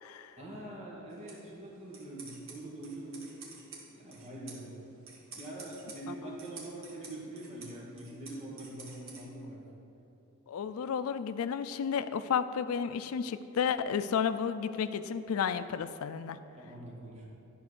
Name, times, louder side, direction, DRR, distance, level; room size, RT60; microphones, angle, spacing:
voice 1, 0.4-3.2 3.9-4.8 5.3-9.6 16.6-17.3, right 1 dB, 30° right, -4 dB, 1.8 m, -44 dB
sound 1, 1.1-9.2, right 4 dB, 70° right, 1.7 m, -52 dB
voice 2, 10.5-16.4, left 7 dB, 85° left, 13 dB, 0.4 m, -32 dB
11.0 x 4.3 x 6.3 m, 2.9 s
head